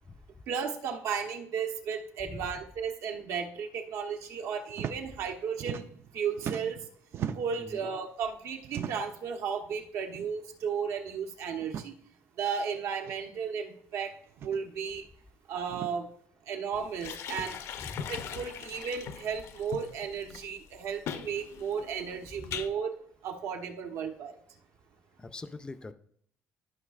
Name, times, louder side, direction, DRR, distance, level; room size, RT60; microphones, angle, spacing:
voice 1, 0.5-5.8 6.1-6.8 7.3-11.9 12.4-14.1 14.4-15.0 15.5-16.1 16.5-17.5 18.1-22.9 23.2-24.4, right 6 dB, 75° right, 4 dB, 1.1 m, -34 dB
sound 1, 4.7-5.0 5.3-6.1 6.4-7.6 8.6-9.2 10.1-10.3 10.6-10.7 11.6-11.9 13.0-13.1 14.3-14.6 15.7-15.9, right 8 dB, 50° right, 0.4 m, -38 dB
voice 2, 7.6-7.9 17.8-18.1 22.5-22.6 25.2-25.9, left 3 dB, 15° left, 12 dB, 0.4 m, -43 dB
sound 2, 16.7-22.7, left 8 dB, 65° left, 0.6 m, -40 dB
13.0 x 5.7 x 2.4 m, 0.65 s
cardioid pair, 135°, 5 cm